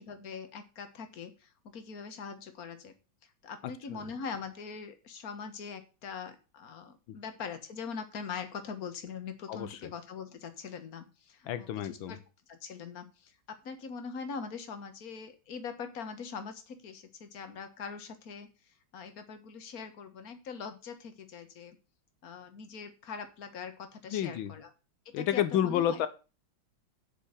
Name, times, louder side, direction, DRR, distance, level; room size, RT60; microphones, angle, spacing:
voice 1, 0.0-2.9 3.4-12.2 12.5-18.5 18.9-21.8 22.2-24.7 25.1-26.0, left 5 dB, 50° left, 8 dB, 1.8 m, -42 dB
voice 2, 9.5-9.9 11.5-12.2 24.1-24.5 25.1-26.1, left 10 dB, 90° left, 12 dB, 1.7 m, -30 dB
8.0 x 6.3 x 8.1 m, 0.32 s
omnidirectional pair, 2.1 m